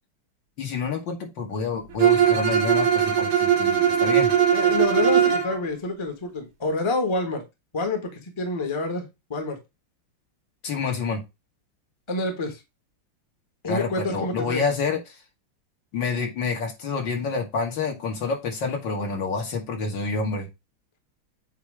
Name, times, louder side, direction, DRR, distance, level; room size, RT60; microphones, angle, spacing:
voice 1, 0.6-4.3 10.6-11.2 13.7-15.2 15.9-20.5, left 4 dB, 60° left, 2 dB, 2.2 m, -28 dB
Bowed string instrument, 2.0-5.5, right 8 dB, 80° right, 2.2 m, -20 dB
voice 2, 4.5-7.4 7.7-9.6 12.1-12.6 13.6-14.6, left 2 dB, 15° left, 4 dB, 1.2 m, -27 dB
8.3 x 2.9 x 4.8 m, 0.23 s
omnidirectional pair, 2.4 m